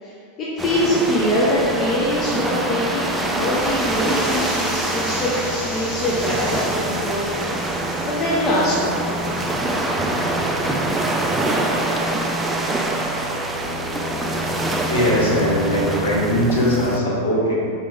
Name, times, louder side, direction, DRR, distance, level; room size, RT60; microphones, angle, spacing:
voice 1, 0.0-9.7, left 1 dB, 30° left, -6 dB, 0.7 m, -23 dB
sound 1, 0.6-17.0, right 1 dB, 10° right, 0.4 m, -24 dB
voice 2, 14.2-17.5, equal, 60° left, -6 dB, 1.2 m, -21 dB
5.1 x 4.3 x 2.3 m, 2.5 s
figure-of-eight pair, 90°, 0 cm